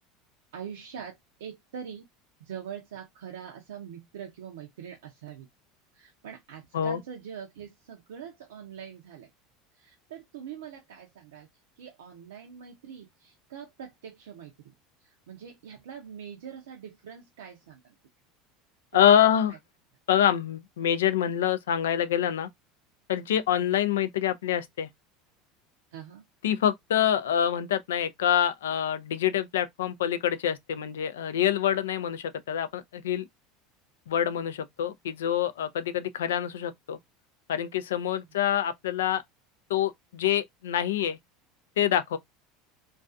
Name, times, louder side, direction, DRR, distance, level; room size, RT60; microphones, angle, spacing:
voice 1, 0.5-2.1 2.4-5.5 5.9-9.3 9.7-11.5 11.8-14.7 15.0-17.9 18.9-19.3 23.5-23.8 25.9-26.2, right 8 dB, 85° right, 0.5 m, -43 dB
voice 2, 18.9-19.5 20.1-22.5 23.1-24.9 26.4-33.2 34.1-37.0 37.5-39.2 39.7-41.2 41.8-42.2, left 10 dB, 85° left, 0.3 m, -26 dB
2.4 x 2.3 x 2.5 m
hypercardioid pair, 90°, 0 cm